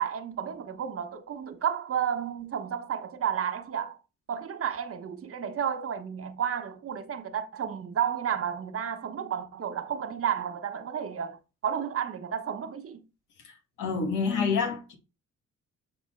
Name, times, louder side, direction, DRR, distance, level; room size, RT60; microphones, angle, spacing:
voice 1, 0.0-4.0 4.3-13.0, right 8 dB, 50° right, 1.2 m, -32 dB
voice 2, 13.4-15.0, left 5 dB, 90° left, 2.1 m, -28 dB
7.5 x 4.4 x 4.5 m
cardioid pair, 90°, 30 cm